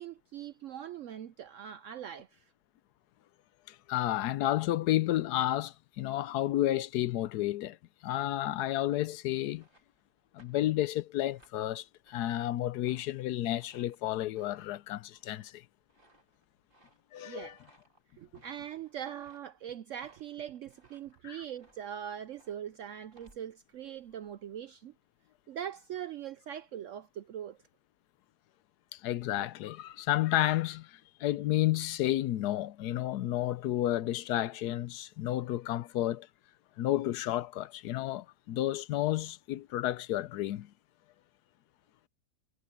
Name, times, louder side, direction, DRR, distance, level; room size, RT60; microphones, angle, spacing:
voice 1, 0.0-2.5 17.2-17.6 18.2-24.9 25.5-27.6, right 10 dB, 70° right, 0.7 m, -42 dB
voice 2, 3.7-7.8 8.0-9.6 10.3-15.6 17.1-17.5 21.2-21.4 28.9-36.3 36.8-40.7, left 14 dB, 75° left, 1.1 m, -31 dB
sound 1, 9.3-24.6, right 2 dB, 30° right, 3.9 m, -66 dB
omnidirectional pair, 1.8 m